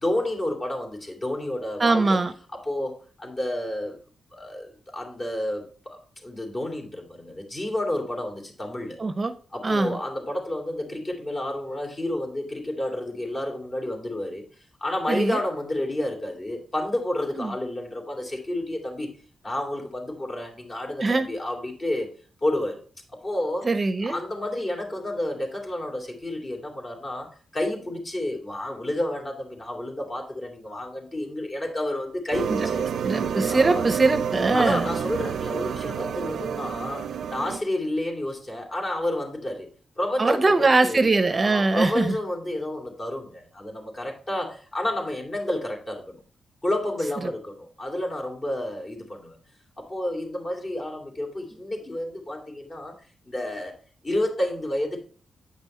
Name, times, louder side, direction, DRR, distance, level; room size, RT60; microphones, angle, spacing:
voice 1, 0.0-2.1 2.5-4.0 4.3-9.0 9.5-14.4 14.8-19.1 19.4-22.1 22.4-22.8 23.1-23.7 24.0-32.9 33.5-33.8 34.5-39.7 40.0-41.1 41.4-46.2 46.6-49.4 49.8-52.9 53.3-53.7 54.0-55.0, left 1 dB, 35° left, 2 dB, 2.9 m, -30 dB
voice 2, 1.8-2.3 9.0-9.3 9.6-10.0 15.1-15.4 17.3-17.5 21.0-21.3 23.6-24.2 32.5-32.7 33.0-34.8 40.2-42.1, right 3 dB, 35° right, 10 dB, 0.7 m, -22 dB
sound 1, 32.3-37.6, right 7 dB, 80° right, 0.6 m, -29 dB
8.7 x 5.5 x 4.3 m, 0.41 s
cardioid pair, 80°, 0 cm